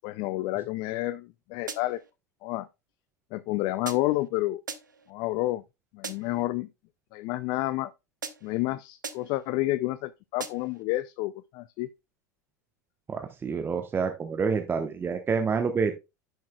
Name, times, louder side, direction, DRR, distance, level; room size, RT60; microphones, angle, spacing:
voice 1, 0.0-2.0 2.4-2.7 3.3-4.6 5.1-5.6 5.9-6.7 7.1-7.9 8.4-11.9, left 18 dB, 50° left, 0.4 m, -29 dB
sound 1, 1.7-2.1 3.9-4.3 4.7-5.1 6.0-6.5 8.2-8.6 9.0-9.5 10.4-10.8, right 5 dB, 85° right, 0.9 m, -40 dB
voice 2, 13.1-16.0, right 5 dB, 20° right, 1.0 m, -28 dB
10.5 x 6.2 x 2.3 m
figure-of-eight pair, 85°, 10 cm